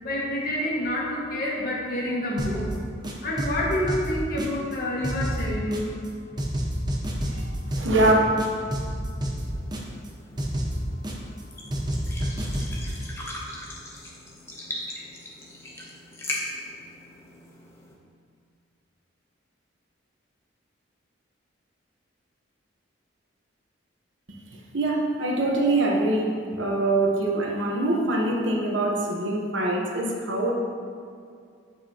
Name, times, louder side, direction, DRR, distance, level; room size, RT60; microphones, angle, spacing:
voice 1, 0.0-2.7 3.2-5.9, left 1 dB, 45° left, -5 dB, 1.7 m, -28 dB
sound 1, 2.4-2.7 3.0-4.7 5.0-6.1 6.4-8.1 8.4-10.1 10.4-11.4 11.7-12.9, equal, 20° right, 0.7 m, -29 dB
voice 2, 7.7-8.1 24.7-30.5, right 2 dB, 65° right, -1 dB, 1.1 m, -24 dB
sound 2, 9.4-17.9, left 1 dB, 15° left, 0.9 m, -39 dB
8.6 x 7.4 x 2.9 m, 2.3 s
head